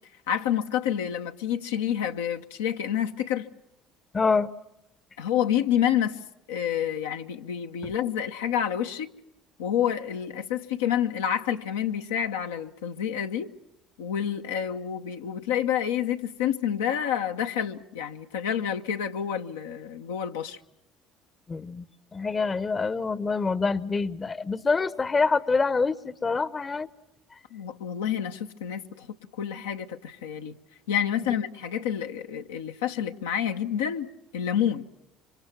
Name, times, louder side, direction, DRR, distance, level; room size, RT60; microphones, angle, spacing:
voice 1, 0.3-3.5 5.2-6.2 6.5-9.1 9.6-13.5 14.0-20.6 27.5-29.1 29.4-30.5 30.9-34.1 34.3-34.9, left 9 dB, 80° left, 0.9 m, -28 dB
voice 2, 4.1-4.5 21.5-21.8 22.1-26.9, left 4 dB, 30° left, 0.8 m, -26 dB
26.5 x 25.0 x 6.0 m
hypercardioid pair, 65°, 0 cm